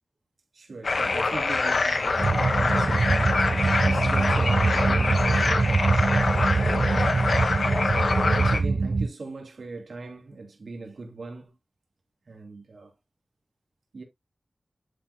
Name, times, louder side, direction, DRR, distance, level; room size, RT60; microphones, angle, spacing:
voice 1, 0.5-6.4 6.7-7.1 7.8-11.5 12.3-12.9 13.9-14.0, right 3 dB, 75° right, 3.2 m, -40 dB
sound 1, 0.8-8.6, left 3 dB, 70° left, 1.3 m, -25 dB
sound 2, 2.2-9.1, right 3 dB, 55° right, 0.4 m, -24 dB
11.5 x 4.3 x 2.3 m
wide cardioid pair, 80°, 0 cm